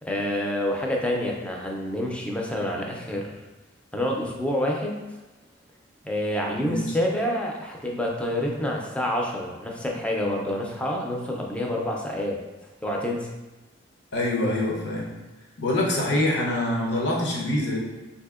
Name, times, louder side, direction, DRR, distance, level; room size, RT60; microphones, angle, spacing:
voice 1, 0.0-3.3 3.9-5.0 6.0-12.4 12.8-13.3, left 1 dB, 5° left, -1 dB, 0.4 m, -27 dB
voice 2, 14.1-15.1 15.6-17.8, left 1 dB, 60° left, -3 dB, 0.7 m, -25 dB
3.9 x 2.7 x 2.4 m, 1.1 s
head